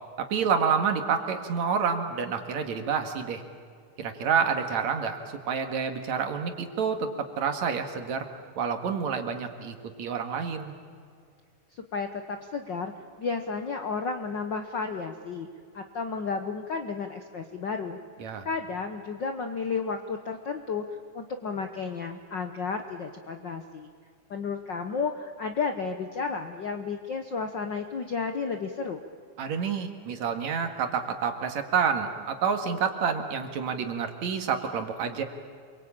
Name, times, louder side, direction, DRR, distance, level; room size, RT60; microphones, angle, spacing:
voice 1, 0.2-3.4 4.0-8.3 8.6-10.7 18.2-18.5 29.4-35.2, right 6 dB, 65° right, 6 dB, 3.0 m, -28 dB
voice 2, 11.7-12.9 13.2-15.5 15.7-18.0 18.4-23.9 24.3-29.0, left 5 dB, 60° left, 6 dB, 1.2 m, -32 dB
28.0 x 23.0 x 8.8 m, 2.2 s
omnidirectional pair, 3.6 m